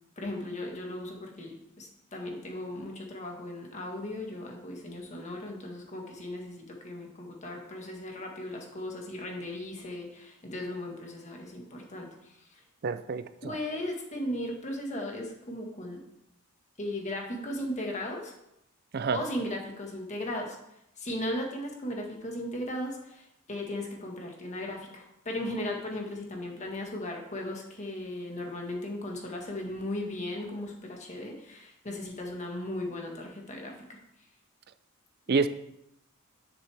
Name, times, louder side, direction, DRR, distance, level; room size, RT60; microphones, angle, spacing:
voice 1, 0.2-12.6 13.4-16.0 16.8-18.3 19.1-20.6 21.0-34.0, left 1 dB, 35° left, 1 dB, 1.6 m, -37 dB
voice 2, 12.8-13.6 18.9-19.2 35.3-35.5, right 4 dB, 45° right, 11 dB, 0.5 m, -28 dB
9.8 x 7.0 x 3.5 m, 0.82 s
head